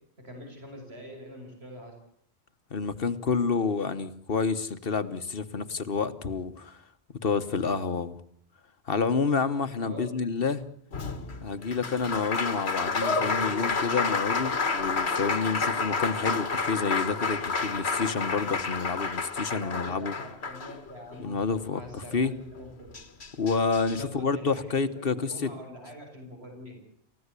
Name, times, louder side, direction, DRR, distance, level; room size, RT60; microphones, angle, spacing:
voice 1, 0.2-1.9 9.8-10.1 13.1-13.9 19.5-21.5 21.7-22.9 23.9-26.8, equal, 80° right, 2 dB, 6.7 m, -43 dB
voice 2, 2.7-6.8 7.2-8.2 8.9-10.7 11.4-20.1 21.2-22.3 23.4-25.5, left 5 dB, 65° left, 12 dB, 1.5 m, -29 dB
Applause, 10.9-21.2 22.6-22.7 22.9-24.0, left 4 dB, 85° left, 2.0 m, -30 dB
29.5 x 15.5 x 8.3 m, 0.67 s
omnidirectional pair, 1.1 m